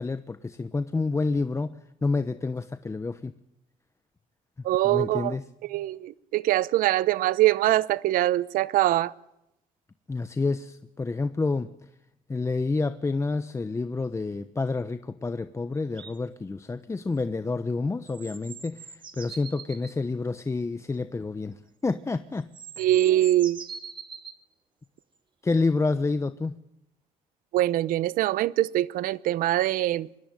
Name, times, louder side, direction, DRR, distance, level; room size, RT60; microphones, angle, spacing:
voice 1, 0.0-1.7 2.0-3.3 4.8-5.4 10.1-11.7 12.3-22.5 22.8-22.9 25.4-26.6, left 3 dB, 20° left, 1.1 m, -28 dB
voice 2, 4.6-5.3 5.6-9.1 22.8-23.6 27.5-30.1, right 14 dB, 80° right, 0.9 m, -23 dB
sound 1, 15.9-16.2 18.0-20.0 21.9-22.0 22.4-24.4 25.5-25.6, right 5 dB, 35° right, 2.6 m, -43 dB
24.5 x 21.0 x 9.2 m
cardioid pair, 95°, 14 cm